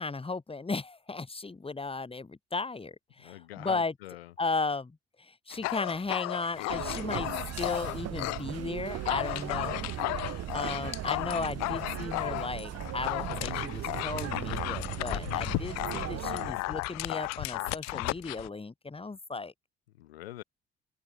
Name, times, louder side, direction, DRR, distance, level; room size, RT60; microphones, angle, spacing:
voice 1, 0.0-3.9 4.4-7.3 7.6-9.9 10.5-19.5, left 3 dB, 20° left, 2.6 m, -35 dB
voice 2, 3.2-4.3 11.7-12.0 20.0-20.4, left 15 dB, 75° left, 1.5 m, -44 dB
Dog, 5.5-8.5 8.8-18.5, left 23 dB, 60° left, 1.3 m, -34 dB
sound 1, 6.7-16.5, right 13 dB, 50° right, 4.2 m, -38 dB
open air
figure-of-eight pair, 50°, 31 cm